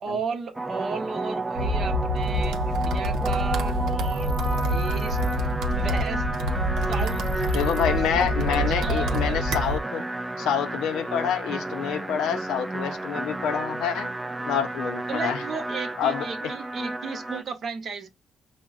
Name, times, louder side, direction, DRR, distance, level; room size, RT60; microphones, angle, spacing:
voice 1, 0.0-4.4 4.7-5.5 5.8-6.2 6.9-10.0 15.1-18.1, right 5 dB, 55° right, 0.8 m, -35 dB
sound 1, 0.5-17.4, right 2 dB, 15° right, 0.3 m, -31 dB
sound 2, 1.6-9.8, equal, 85° right, 0.6 m, -27 dB
voice 2, 7.5-10.1 10.4-14.1 14.5-15.4 16.0-16.5, left 8 dB, 90° left, 0.5 m, -27 dB
5.9 x 2.1 x 2.4 m
cardioid pair, 90°, 0 cm